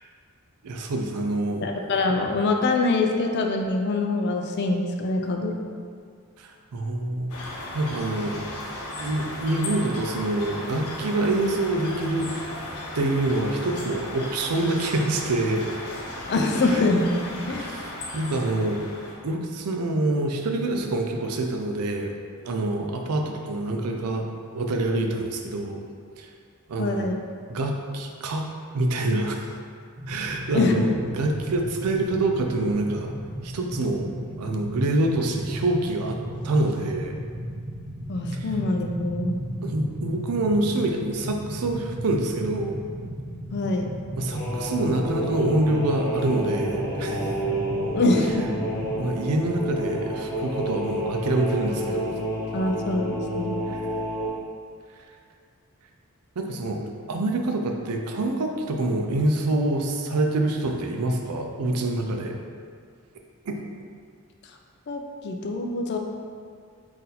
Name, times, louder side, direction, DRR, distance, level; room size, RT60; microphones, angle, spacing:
voice 1, 0.6-1.7 6.4-7.4 7.7-8.5 9.0-12.3 12.9-15.6 16.7-16.8 17.5-18.9 19.2-22.1 22.4-24.3 24.5-25.8 26.2-26.3 26.7-27.1 27.5-28.5 28.7-29.5 30.1-33.1 33.4-34.1 34.4-36.2 36.4-37.1 39.6-42.8 44.2-47.3 48.9-52.1 53.7-53.8 56.4-56.8 57.1-62.4 63.5-63.6, right 2 dB, 90° right, 3 dB, 0.5 m, -26 dB
voice 2, 1.6-5.6 16.3-17.7 26.8-27.2 30.5-30.7 38.1-39.4 43.5-43.9 47.9-48.7 52.5-53.6 64.9-66.0, left 2 dB, 50° left, 2 dB, 0.4 m, -24 dB
sound 1, 7.3-19.1, left 1 dB, 80° left, 0.7 m, -36 dB
sound 2, 30.0-48.9, equal, 50° right, 0.7 m, -35 dB
sound 3, 44.3-54.3, equal, 30° left, 1.3 m, -30 dB
4.1 x 2.5 x 4.0 m, 2.1 s
head